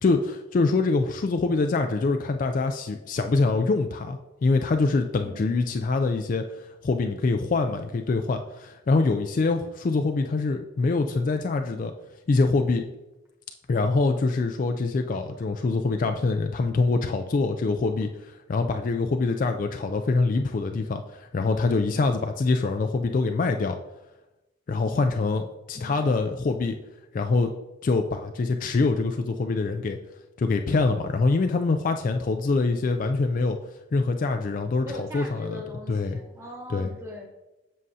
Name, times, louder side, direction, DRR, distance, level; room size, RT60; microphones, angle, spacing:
voice 1, 0.0-11.9 12.3-12.8 13.7-23.8 24.7-26.8 27.1-27.5 27.8-30.0 30.4-33.6 33.9-35.6 35.9-36.2 36.7-36.9, left 3 dB, 40° left, 5 dB, 0.3 m, -24 dB
voice 2, 5.2-5.6 25.7-26.2 34.8-37.3, left 1 dB, 15° right, 0 dB, 1.2 m, -41 dB
7.5 x 6.2 x 2.7 m, 0.99 s
head